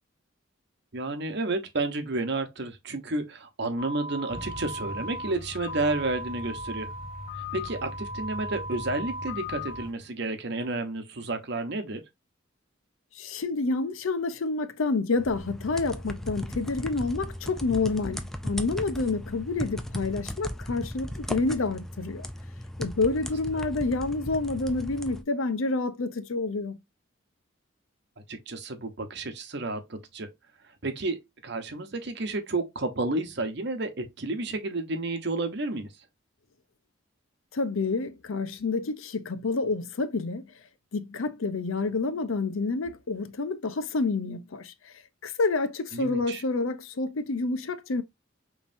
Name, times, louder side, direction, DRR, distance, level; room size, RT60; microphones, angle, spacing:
voice 1, 0.9-6.9 7.5-12.0 28.3-30.3 30.8-35.9 45.9-46.4, right 2 dB, 55° right, 0.9 m, -31 dB
sound 1, 3.8-9.8, left 1 dB, 45° left, 1.2 m, -38 dB
Truck, 4.3-9.9, left 1 dB, 25° right, 1.7 m, -42 dB
voice 2, 13.2-22.3 22.8-26.8 37.5-40.5 40.9-44.9 45.2-48.0, left 3 dB, 90° left, 0.6 m, -28 dB
sound 2, 15.2-25.2, equal, ahead, 0.3 m, -37 dB
5.3 x 3.2 x 2.6 m
head